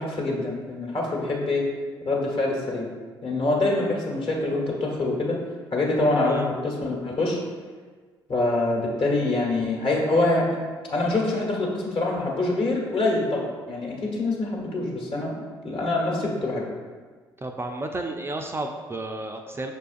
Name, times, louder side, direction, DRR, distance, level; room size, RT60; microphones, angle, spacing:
voice 1, 0.0-1.6 2.0-2.9 3.2-5.4 5.7-7.4 8.3-10.6 10.9-15.4 15.6-16.7, left 2 dB, 50° left, -3 dB, 1.1 m, -25 dB
voice 2, 17.4-19.7, right 2 dB, 20° right, 3 dB, 0.3 m, -32 dB
6.1 x 2.3 x 2.5 m, 1.5 s
hypercardioid pair, 50°, 12 cm